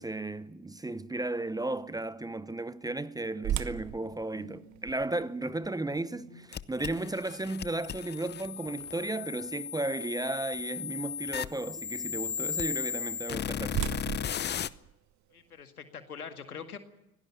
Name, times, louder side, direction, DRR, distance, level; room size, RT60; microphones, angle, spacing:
voice 1, 0.0-14.0, right 2 dB, 10° right, 0.9 m, -34 dB
sound 1, 3.4-9.4 9.9-10.0 10.6-10.9 12.9-15.6, right 11 dB, 40° right, 1.1 m, -39 dB
Bowed string instrument, 3.7-6.8 7.1-7.3 7.7-7.8 8.1-10.0 10.3-11.1 11.7-12.3, right 1 dB, 85° right, 3.8 m, -57 dB
sound 2, 6.5-14.7, left 9 dB, 25° left, 0.8 m, -36 dB
voice 2, 15.3-16.8, left 6 dB, 90° left, 2.1 m, -43 dB
24.5 x 17.5 x 7.2 m
hypercardioid pair, 75°, 43 cm